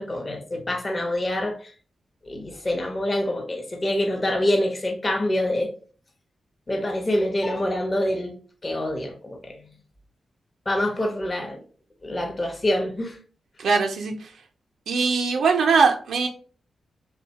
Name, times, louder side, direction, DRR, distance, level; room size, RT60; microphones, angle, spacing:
voice 1, 0.0-1.7 2.2-5.7 6.7-8.4 8.6-9.6 10.7-11.6 12.0-13.2, left 1 dB, 40° left, 0.6 m, -26 dB
voice 2, 13.6-14.3 14.9-16.3, right 4 dB, 80° right, 0.3 m, -21 dB
2.7 x 2.1 x 2.7 m
supercardioid pair, 40°, 0 cm